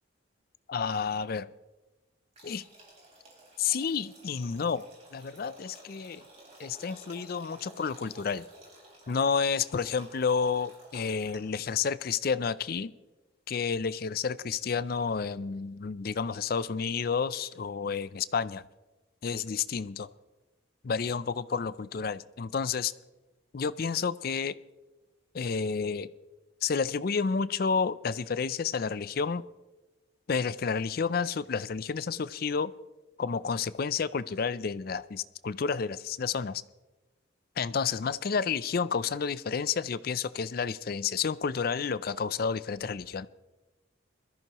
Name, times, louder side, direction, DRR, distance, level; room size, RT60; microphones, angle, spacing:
voice 1, 0.7-1.5 2.4-2.6 3.6-6.2 6.6-8.4 9.1-12.9 13.5-18.6 19.2-20.1 20.8-22.9 23.5-24.5 25.3-26.1 26.6-29.4 30.3-32.7 33.2-36.6 37.6-43.3, left 5 dB, 50° left, 16 dB, 0.4 m, -30 dB
sound 1, 2.3-11.7, right 1 dB, 30° right, 4.3 m, -53 dB
21.5 x 14.0 x 3.0 m, 1.1 s
head